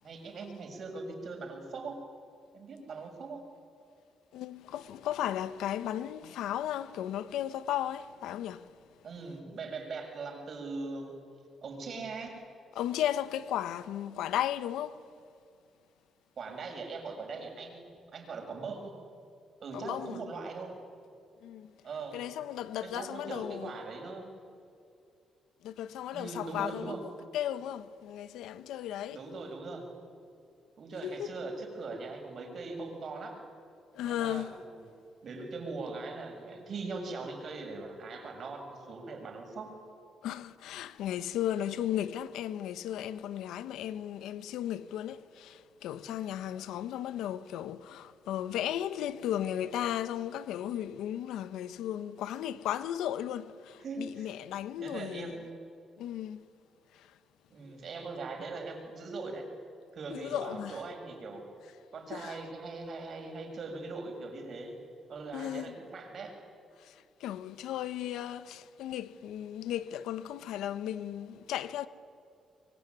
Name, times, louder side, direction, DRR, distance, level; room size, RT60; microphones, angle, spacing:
voice 1, 0.0-2.0 2.5-3.5 9.0-11.2 11.6-12.4 16.4-19.0 19.6-20.7 21.8-22.2 22.8-24.3 26.1-27.0 29.1-29.9 30.8-33.4 34.0-34.9 35.2-39.7 53.8-54.3 54.8-55.6 57.5-59.5 59.9-61.4 61.9-64.8 65.1-66.3, right 3 dB, 55° right, 6.8 m, -40 dB
voice 2, 4.3-8.8 12.7-15.1 19.7-20.2 21.4-21.7 22.1-23.8 25.6-29.2 31.0-31.3 33.9-34.6 40.2-55.4 56.0-56.5 56.9-57.2 60.1-60.8 62.1-62.4 65.3-65.8 66.8-71.9, left 11 dB, 85° left, 1.1 m, -35 dB
25.0 x 23.5 x 9.6 m
cardioid pair, 90°, 0 cm